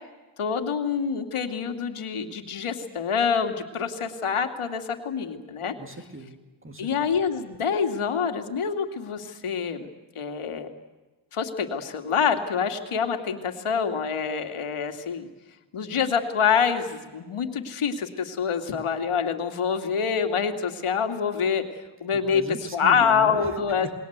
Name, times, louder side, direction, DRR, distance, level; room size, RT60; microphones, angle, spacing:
voice 1, 0.4-5.7 6.8-9.9 10.1-10.7 11.3-15.3 15.7-22.4 22.7-23.9, left 6 dB, 80° left, 6 dB, 2.6 m, -26 dB
voice 2, 5.8-6.9 22.1-23.4 23.8-23.9, right 2 dB, 25° right, 6 dB, 2.6 m, -39 dB
29.0 x 21.0 x 8.1 m, 1.2 s
wide cardioid pair, 135°, 50 cm